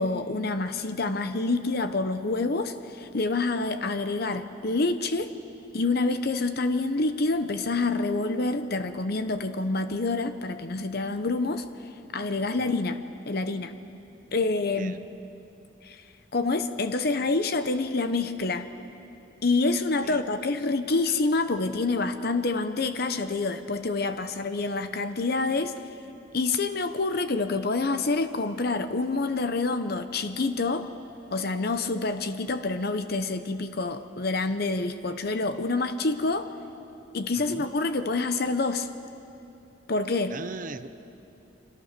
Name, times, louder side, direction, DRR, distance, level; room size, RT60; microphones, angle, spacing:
voice 1, 0.0-5.3 5.7-11.6 12.1-13.0 13.3-13.7 14.3-14.9 15.8-16.0 16.3-18.7 19.4-25.7 26.3-30.9 31.3-36.5 37.1-38.9 39.9-40.3, left 3 dB, 55° left, 9 dB, 0.9 m, -27 dB
voice 2, 40.3-40.9, right 3 dB, 45° right, 11 dB, 0.8 m, -39 dB
30.0 x 24.5 x 6.7 m, 2.8 s
head